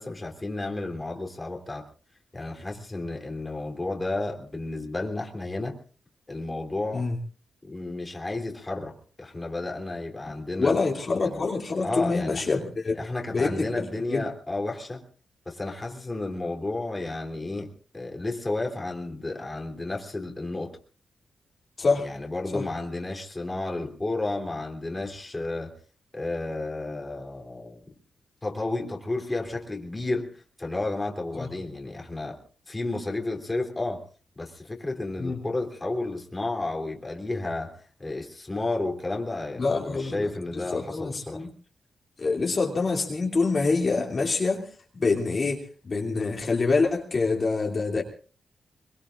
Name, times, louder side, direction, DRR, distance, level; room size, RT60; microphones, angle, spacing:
voice 1, 0.0-1.8 2.3-5.8 6.3-7.1 7.6-10.8 11.2-11.5 11.8-12.5 12.9-15.0 15.4-20.8 22.0-25.7 26.1-27.8 28.4-32.4 32.7-34.0 34.3-41.4, left 2 dB, 20° left, 1 dB, 3.2 m, -32 dB
voice 2, 10.6-13.0 13.3-13.8 14.1-14.2 21.8-22.1 22.5-22.6 31.3-31.5 35.2-35.4 39.6-41.5 42.2-44.7 44.9-48.0, left 4 dB, 40° left, 0 dB, 2.8 m, -26 dB
24.5 x 23.0 x 2.5 m, 0.40 s
wide cardioid pair, 115°, 0 cm